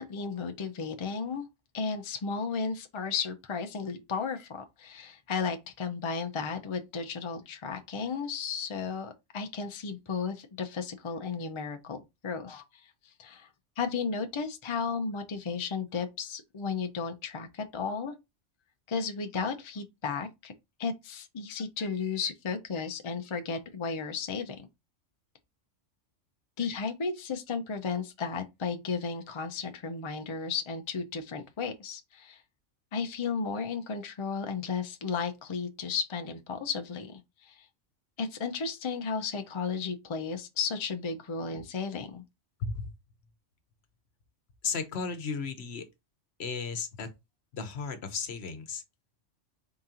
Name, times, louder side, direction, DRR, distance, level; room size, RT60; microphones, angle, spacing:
voice 1, 0.0-1.5 1.7-12.6 13.2-13.5 13.8-18.1 18.9-20.5 20.8-24.7 26.6-32.4 32.9-37.7 38.2-42.2, left 5 dB, 45° left, 0.4 m, -34 dB
voice 2, 42.6-42.9 44.6-45.8 46.4-47.1 47.5-48.8, left 5 dB, 65° left, 1.0 m, -34 dB
3.8 x 2.8 x 3.7 m
omnidirectional pair, 1.3 m